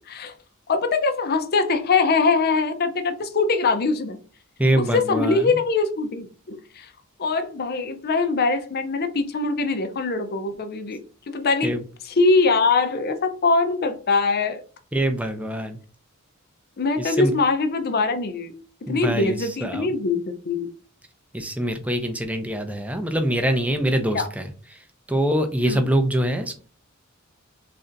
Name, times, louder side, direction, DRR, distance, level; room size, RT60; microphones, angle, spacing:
voice 1, 0.7-4.2 4.7-6.9 7.2-11.0 11.3-11.7 12.0-14.6 16.8-18.5 18.9-20.7 24.1-24.3 25.6-25.8, left 3 dB, 45° left, 8 dB, 0.5 m, -22 dB
voice 2, 4.6-5.5 11.6-11.8 14.9-15.8 17.0-17.3 18.9-19.9 21.3-24.5 25.1-26.7, right 1 dB, 5° right, 7 dB, 0.5 m, -24 dB
3.2 x 2.6 x 3.8 m, 0.39 s
head